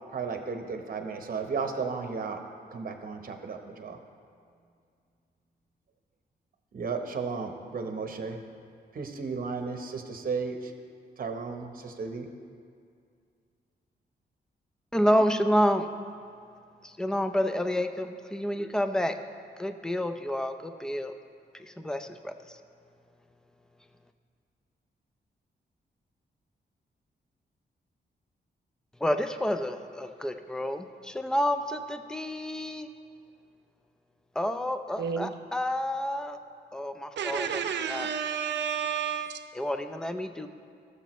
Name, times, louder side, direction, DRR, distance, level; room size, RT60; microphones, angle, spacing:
voice 1, 0.1-2.4 2.7-4.0 6.7-8.4 8.9-10.7 11.2-12.3, right 5 dB, 55° right, 5 dB, 0.9 m, -34 dB
voice 2, 14.9-15.9 16.8-19.2 19.6-21.1 21.5-22.6 29.0-32.9 34.4-36.4 36.7-38.1 39.5-40.5, equal, 5° left, 8 dB, 0.5 m, -29 dB
voice 3, 35.0-35.3 37.2-39.4, right 7 dB, 85° right, 7 dB, 0.6 m, -31 dB
16.5 x 6.8 x 3.1 m, 2.3 s
cardioid pair, 105°, 18 cm